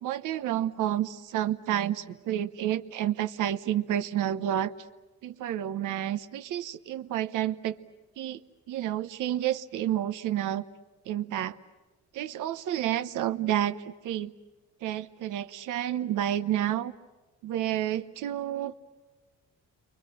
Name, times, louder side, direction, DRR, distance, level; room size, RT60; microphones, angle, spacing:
voice 1, 0.0-4.7 5.2-7.8 8.2-8.4 8.7-10.6 11.1-11.6 12.1-14.3 14.8-16.9 17.4-18.7, right 12 dB, 85° right, 11 dB, 1.1 m, -30 dB
30.0 x 24.0 x 7.8 m, 1.2 s
cardioid pair, 90°, 30 cm